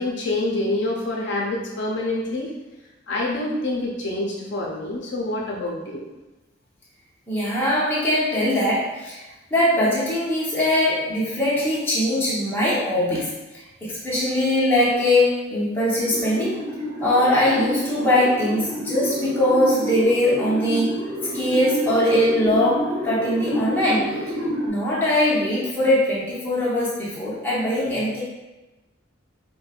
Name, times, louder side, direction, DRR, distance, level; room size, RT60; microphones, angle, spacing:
voice 1, 0.0-2.6 3.1-6.1, left 2 dB, 60° left, -2 dB, 0.5 m, -26 dB
voice 2, 7.3-13.3 13.8-16.6 17.0-20.9 21.3-24.2 24.7-28.2, left 1 dB, 10° left, -8 dB, 0.8 m, -21 dB
sound 1, 16.1-24.7, equal, 85° right, 0.8 m, -29 dB
5.1 x 2.1 x 2.4 m, 1.1 s
head